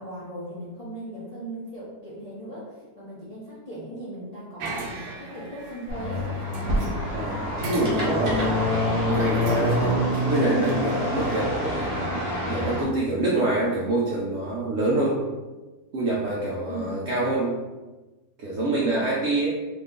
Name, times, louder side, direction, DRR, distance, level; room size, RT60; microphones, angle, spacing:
voice 1, 0.0-6.3 16.7-17.0 18.7-19.1, right 1 dB, 45° left, -9 dB, 0.5 m, -38 dB
sound 1, 4.6-7.3 7.6-11.4, right 1 dB, 85° right, 1.2 m, -38 dB
sound 2, 5.9-12.8, equal, 45° right, 1.2 m, -26 dB
voice 2, 7.1-8.6 9.1-10.0 10.2-11.9 12.5-15.2 15.9-17.5 18.4-19.5, right 2 dB, 70° right, -5 dB, 0.7 m, -26 dB
2.9 x 2.4 x 3.6 m, 1.2 s
omnidirectional pair, 1.7 m